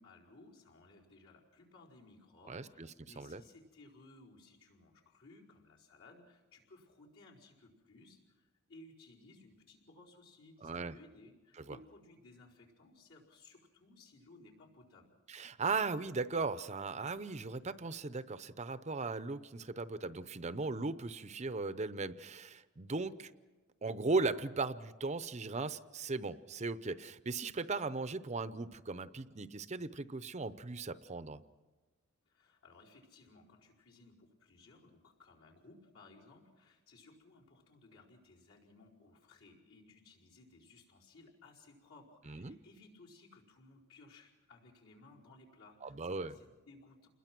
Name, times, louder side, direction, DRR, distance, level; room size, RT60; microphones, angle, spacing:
voice 1, 0.0-15.2 32.3-47.1, left 2 dB, 70° left, -4 dB, 4.8 m, -60 dB
voice 2, 2.5-3.4 10.6-11.0 11.7-11.8 15.3-23.3 23.8-31.4 42.3-42.6 45.8-46.3, right 3 dB, 30° right, 14 dB, 0.7 m, -37 dB
28.5 x 21.5 x 6.1 m, 1.2 s
head